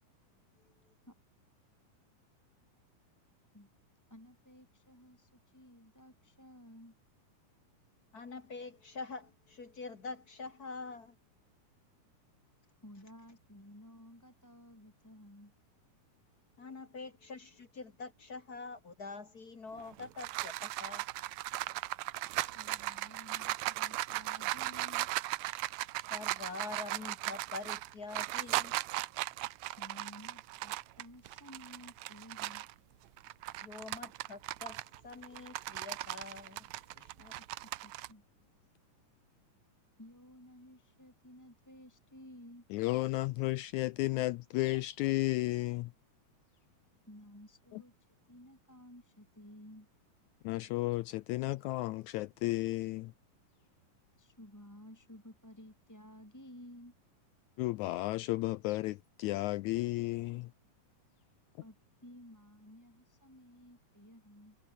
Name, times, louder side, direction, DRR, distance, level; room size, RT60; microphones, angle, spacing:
voice 1, 4.1-6.9 12.8-15.5 22.4-25.1 29.8-32.6 37.6-38.2 40.0-42.6 47.1-49.9 54.2-56.9 61.6-61.8 62.0-64.6, left 1 dB, 5° left, 3.1 m, -54 dB
voice 2, 8.1-11.2 16.6-21.0 26.1-28.7 33.6-37.3, left 4 dB, 35° left, 1.8 m, -45 dB
sound 1, 19.8-32.7 33.2-38.1, right 17 dB, 80° right, 1.6 m, -37 dB
voice 3, 42.7-45.9 47.7-47.8 50.4-53.1 57.6-60.5, left 18 dB, 90° left, 1.6 m, -33 dB
omnidirectional pair, 3.9 m